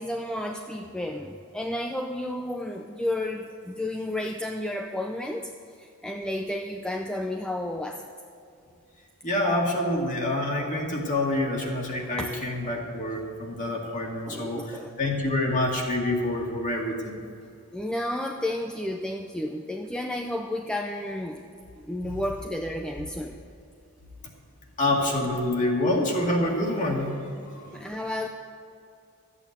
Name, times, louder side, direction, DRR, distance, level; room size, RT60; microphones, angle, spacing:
voice 1, 0.0-5.5 5.8-8.1 12.2-12.4 14.3-14.9 17.7-21.4 21.8-23.4 27.7-28.3, left 1 dB, 5° left, 2 dB, 0.5 m, -32 dB
voice 2, 9.2-17.2 24.8-27.9, left 1 dB, 35° left, 0 dB, 2.1 m, -27 dB
13.5 x 8.6 x 8.0 m, 2.5 s
head